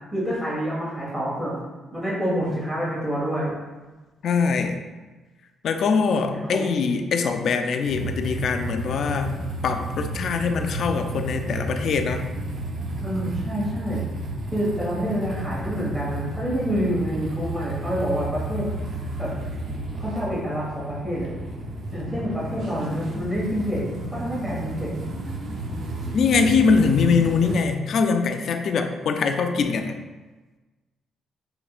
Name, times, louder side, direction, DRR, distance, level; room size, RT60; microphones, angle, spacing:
voice 1, 0.1-1.5 1.9-3.5 6.3-6.6 13.0-14.0 14.5-18.7 19.2-19.3 20.0-21.3 21.9-23.8 24.1-24.9, equal, ahead, -7 dB, 1.5 m, -27 dB
voice 2, 4.2-4.8 5.6-9.3 9.6-12.3 22.1-22.2 26.1-30.0, left 5 dB, 65° left, 6 dB, 0.4 m, -22 dB
sound 1, 7.9-27.5, right 1 dB, 55° right, 0.6 m, -32 dB
5.5 x 2.7 x 2.4 m, 1.2 s
cardioid pair, 90°, 0 cm